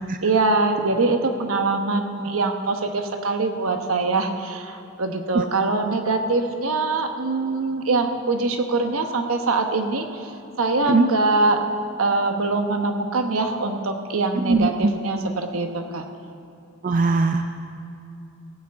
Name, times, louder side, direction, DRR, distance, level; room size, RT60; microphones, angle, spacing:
voice 1, 0.2-11.6 12.0-16.0, right 3 dB, 70° right, 5 dB, 1.0 m, -23 dB
voice 2, 14.4-14.9 16.8-17.5, right 3 dB, 40° right, 6 dB, 0.4 m, -20 dB
16.5 x 6.0 x 7.7 m, 2.6 s
head